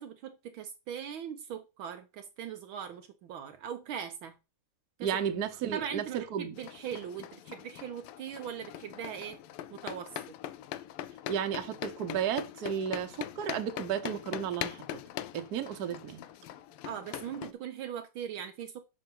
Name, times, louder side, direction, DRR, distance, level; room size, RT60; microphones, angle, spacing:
voice 1, 0.0-4.4 5.0-5.2 5.7-9.4 9.7-10.4 16.8-18.8, right 8 dB, 70° right, 1.5 m, -40 dB
voice 2, 5.0-6.5 11.3-14.8 15.3-16.2, right 8 dB, 55° right, 1.3 m, -33 dB
sound 1, 6.6-17.5, left 12 dB, 85° left, 1.5 m, -42 dB
6.6 x 5.2 x 5.4 m
omnidirectional pair, 2.4 m